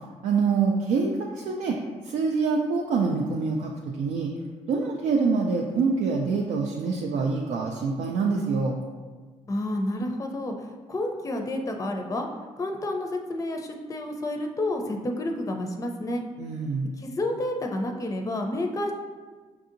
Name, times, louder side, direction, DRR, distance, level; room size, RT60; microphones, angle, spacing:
voice 1, 0.2-1.8 2.0-4.3 4.7-8.8 16.4-16.9, right 4 dB, 85° right, 0 dB, 0.4 m, -25 dB
voice 2, 9.5-12.3 12.6-16.2 17.0-18.9, left 1 dB, 25° left, 3 dB, 0.5 m, -30 dB
5.7 x 2.7 x 2.5 m, 1.4 s
cardioid pair, 80°, 13 cm